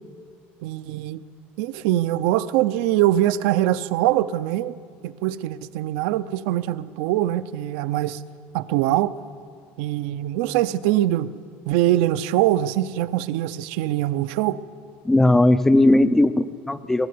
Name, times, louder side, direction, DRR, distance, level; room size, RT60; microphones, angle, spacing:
voice 1, 0.6-1.2 1.6-4.7 5.0-8.2 8.5-9.1 9.8-11.3 11.7-14.6, right 14 dB, 75° right, 0.7 m, -23 dB
voice 2, 15.0-17.1, left 1 dB, 5° left, 0.4 m, -17 dB
21.5 x 13.0 x 9.5 m
cardioid pair, 160°, 5 cm